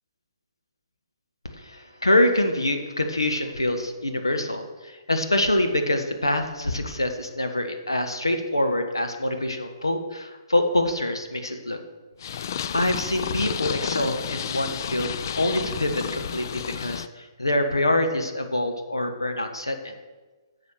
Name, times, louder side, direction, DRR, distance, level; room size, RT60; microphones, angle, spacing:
voice 1, 1.4-11.8 12.3-12.4 12.7-19.9, left 1 dB, 90° left, 6 dB, 1.3 m, -25 dB
Purr, 12.2-17.1, left 8 dB, 50° left, 0.4 m, -31 dB
9.9 x 7.4 x 6.4 m, 1.3 s
figure-of-eight pair, 130°, 2 cm